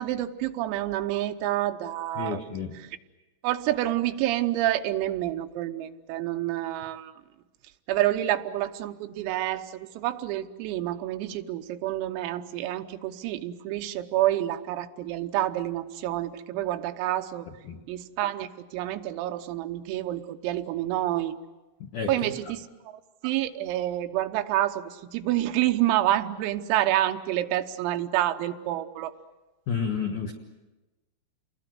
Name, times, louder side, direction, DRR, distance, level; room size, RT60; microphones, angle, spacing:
voice 1, 0.0-2.4 3.4-7.1 7.9-17.5 17.9-21.4 22.1-29.1, right 14 dB, 85° right, 8 dB, 3.7 m, -28 dB
voice 2, 2.2-2.8 17.5-17.8 21.8-22.3 29.7-30.3, left 6 dB, 75° left, 2 dB, 1.8 m, -31 dB
29.0 x 21.0 x 7.8 m, 1.1 s
omnidirectional pair, 6.0 m